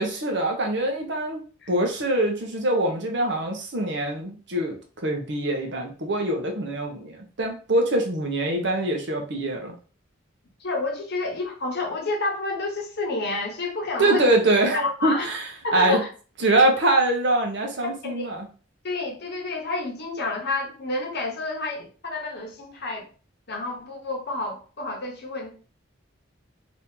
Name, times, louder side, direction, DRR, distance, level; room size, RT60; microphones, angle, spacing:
voice 1, 0.0-1.4 1.7-9.7 14.0-16.0 16.4-18.5, right 1 dB, 65° right, 3 dB, 0.9 m, -24 dB
voice 2, 10.6-14.3 14.7-15.3 15.6-16.1 17.8-18.3 18.8-23.1 23.5-25.5, left 2 dB, 55° left, 0 dB, 0.9 m, -29 dB
2.9 x 2.7 x 3.6 m, 0.38 s
head